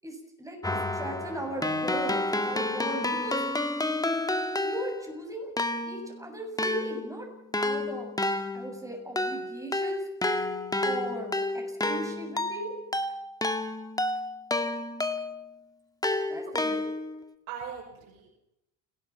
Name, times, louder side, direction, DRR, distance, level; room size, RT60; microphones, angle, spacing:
voice 1, 0.0-3.4 4.6-5.5 5.9-7.3 7.6-8.1 8.5-10.0 10.8-12.7 16.3-16.9, right 1 dB, 5° right, 3 dB, 7.4 m, -38 dB
Keyboard (musical), 0.6-5.2 5.6-15.5 16.0-17.2, left 2 dB, 10° left, 2.0 m, -30 dB
voice 2, 16.5-17.0 17.5-18.3, right 7 dB, 85° right, -2 dB, 6.6 m, -41 dB
29.5 x 20.0 x 6.0 m, 0.88 s
cardioid pair, 110°, 45 cm